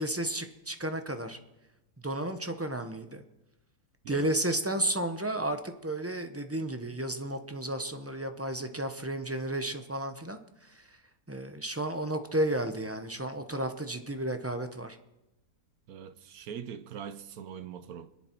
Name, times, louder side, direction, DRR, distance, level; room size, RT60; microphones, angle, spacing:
voice 1, 0.0-1.4 2.0-3.2 4.1-11.0 11.3-15.0, right 1 dB, 15° right, 0.4 m, -33 dB
voice 2, 15.9-18.1, right 8 dB, 65° right, 1.1 m, -42 dB
26.0 x 11.0 x 4.5 m
omnidirectional pair, 1.8 m